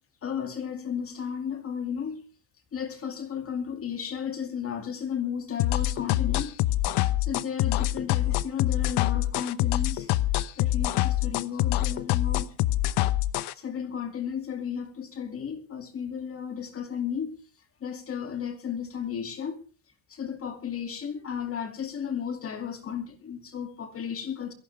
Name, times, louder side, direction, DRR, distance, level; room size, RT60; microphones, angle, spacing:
voice 1, 0.2-2.2 2.7-6.5 7.2-10.1 10.6-12.5 13.6-17.4 17.8-19.6 20.1-24.5, left 8 dB, 30° left, 2.4 m, -34 dB
sound 1, 5.6-13.5, left 15 dB, 70° left, 0.9 m, -25 dB
23.5 x 14.5 x 3.4 m
cardioid pair, 180°, 42 cm